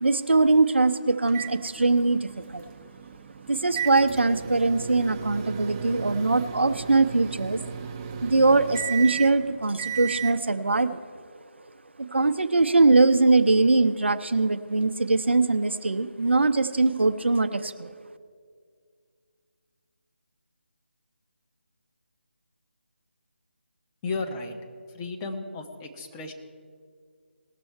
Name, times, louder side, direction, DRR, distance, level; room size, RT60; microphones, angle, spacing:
voice 1, 0.0-2.7 3.5-7.6 8.2-11.0 12.0-17.9, right 3 dB, 70° right, 10 dB, 0.6 m, -22 dB
sound 1, 1.3-10.4, right 7 dB, 20° right, 0.5 m, -35 dB
voice 2, 24.0-24.6 24.9-26.3, left 3 dB, 15° left, 3 dB, 0.7 m, -33 dB
19.0 x 7.0 x 4.5 m, 2.1 s
figure-of-eight pair, 155°, 6 cm